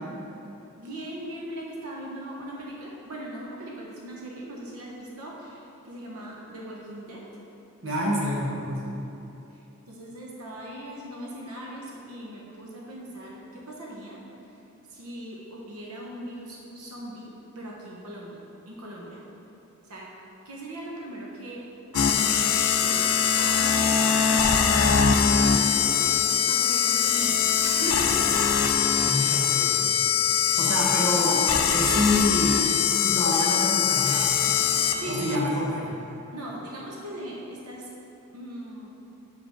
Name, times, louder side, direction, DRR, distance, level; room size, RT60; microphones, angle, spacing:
voice 1, 0.7-7.2 9.5-14.2 14.9-18.4 18.7-19.2 19.8-20.1 20.4-21.7 21.9-22.4 22.8-26.1 26.5-28.2 29.2-29.5 30.7-30.9 34.9-35.5 36.3-37.9 38.3-38.9, right 1 dB, 85° right, -3 dB, 1.1 m, -39 dB
voice 2, 7.8-9.0 28.6-29.9 30.6-32.6 33.0-34.6 35.1-35.9, left 1 dB, 60° right, -3 dB, 1.1 m, -27 dB
sound 1, 21.9-35.4, left 7 dB, 75° left, 0.5 m, -22 dB
5.2 x 5.2 x 6.4 m, 2.9 s
head